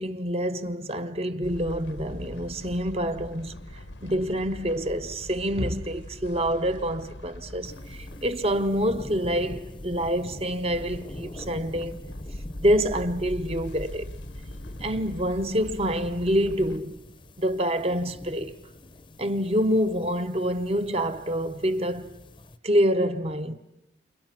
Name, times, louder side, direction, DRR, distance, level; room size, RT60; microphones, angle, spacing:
voice 1, 0.0-3.5 4.0-12.0 12.6-14.1 14.8-17.0 17.4-18.6 19.2-22.1 22.6-23.5, equal, 30° right, 0.9 m, -26 dB
sound 1, 1.4-16.8, left 1 dB, 85° left, 1.5 m, -42 dB
sound 2, 7.6-22.6, left 1 dB, 25° left, 0.8 m, -45 dB
30.0 x 28.5 x 6.0 m
head